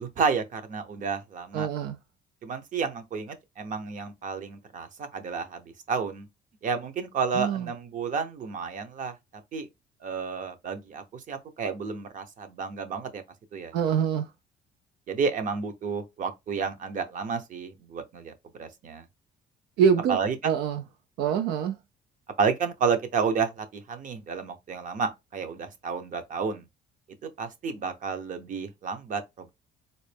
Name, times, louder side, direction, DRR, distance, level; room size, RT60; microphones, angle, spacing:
voice 1, 0.0-1.7 2.4-5.6 5.9-6.3 6.6-9.1 9.5-9.7 10.0-13.2 13.5-13.7 15.1-18.3 18.6-19.0 20.1-20.5 22.4-26.6 27.4-29.5, right 5 dB, 50° right, 0.8 m, -31 dB
voice 2, 1.5-2.0 7.3-7.7 13.7-14.3 19.8-20.2 20.4-20.8 21.2-21.8, right 7 dB, 80° right, 0.4 m, -25 dB
4.0 x 2.1 x 3.4 m
cardioid pair, 110°, 17 cm